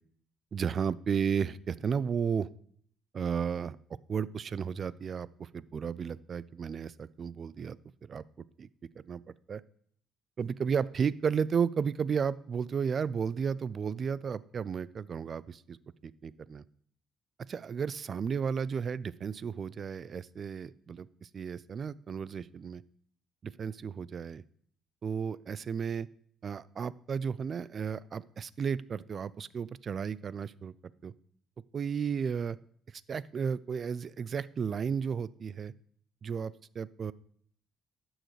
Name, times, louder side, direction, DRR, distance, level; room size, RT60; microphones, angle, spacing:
voice 1, 0.5-2.5 3.1-3.8 4.1-7.8 8.0-8.2 8.6-8.7 9.1-9.2 9.5-9.6 10.4-15.8 16.0-16.6 17.5-22.8 23.4-24.4 25.0-26.1 26.4-30.7 31.0-31.1 31.7-32.6 33.1-35.7 36.2-37.1, right 6 dB, 45° right, 20 dB, 0.3 m, -33 dB
11.5 x 6.3 x 3.2 m, 0.62 s
cardioid pair, 100°, 0 cm